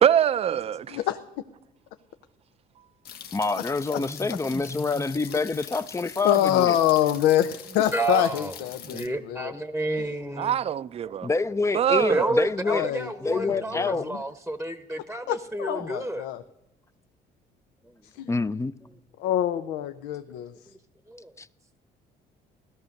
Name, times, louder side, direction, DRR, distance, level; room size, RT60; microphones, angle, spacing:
voice 1, 0.0-1.0 10.4-11.3 11.7-12.3, right 9 dB, 35° right, 0.5 m, -23 dB
voice 2, 0.9-1.2 6.2-9.5 12.6-14.1 15.3-16.4 18.1-18.3 19.2-20.5, left 12 dB, 90° left, 0.7 m, -25 dB
sound 1, 3.0-9.1, left 8 dB, 65° left, 1.4 m, -43 dB
voice 3, 3.3-6.8 11.2-12.8 13.2-14.1 18.3-18.7, left 3 dB, 15° left, 0.5 m, -27 dB
voice 4, 3.9-5.0 7.9-8.5 8.8-10.6 11.0-11.3 12.1-16.3 17.8-17.9 20.3-20.4, right 2 dB, 5° right, 1.0 m, -31 dB
16.5 x 13.5 x 6.5 m
cardioid pair, 110°, 17 cm